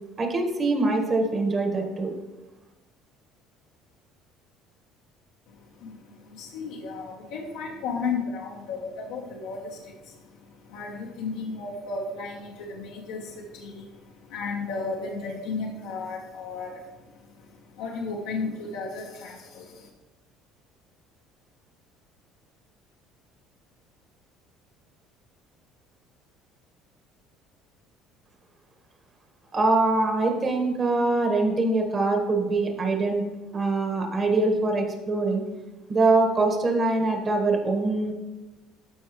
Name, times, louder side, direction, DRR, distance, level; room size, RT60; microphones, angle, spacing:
voice 1, 0.2-2.1 29.5-33.2 33.5-35.4 35.9-38.1, right 2 dB, 35° right, 3 dB, 1.6 m, -23 dB
voice 2, 5.5-19.9, left 4 dB, 90° left, -3 dB, 1.1 m, -34 dB
13.0 x 4.7 x 3.2 m, 1.1 s
supercardioid pair, 105°, 0 cm